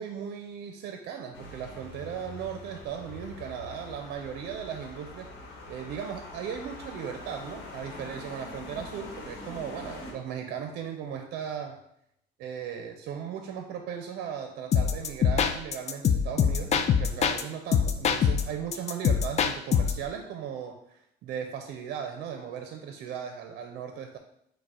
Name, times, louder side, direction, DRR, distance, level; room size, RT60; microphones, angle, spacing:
voice 1, 0.0-5.3 5.7-11.8 12.4-24.2, right 8 dB, 75° right, 5 dB, 0.5 m, -37 dB
sound 1, 1.3-10.1, left 2 dB, 85° left, 1.0 m, -44 dB
sound 2, 14.7-17.4 17.7-20.1, left 7 dB, 40° left, 0.4 m, -24 dB
4.8 x 2.1 x 4.8 m, 0.74 s
cardioid pair, 110°, 17 cm